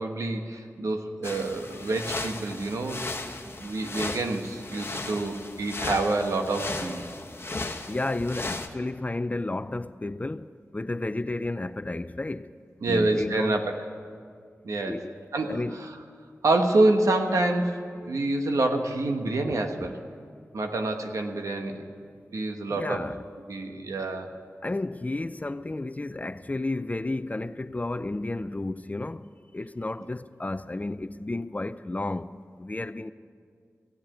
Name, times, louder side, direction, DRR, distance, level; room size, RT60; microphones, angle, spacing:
voice 1, 0.0-3.1 3.6-7.0 12.8-13.9 14.6-15.0 15.3-15.6 16.4-19.9 20.5-21.8 22.3-23.0 23.5-24.3, right 2 dB, 85° right, 1.2 m, -27 dB
sound 1, 1.2-8.7, left 2 dB, 50° left, 1.1 m, -36 dB
voice 2, 7.9-12.5 12.8-13.6 14.9-15.2 15.5-15.8 22.7-23.2 24.6-29.3 29.5-32.3 32.6-33.1, left 2 dB, 30° left, 0.5 m, -32 dB
16.0 x 7.8 x 9.9 m
cardioid pair, 45°, 5 cm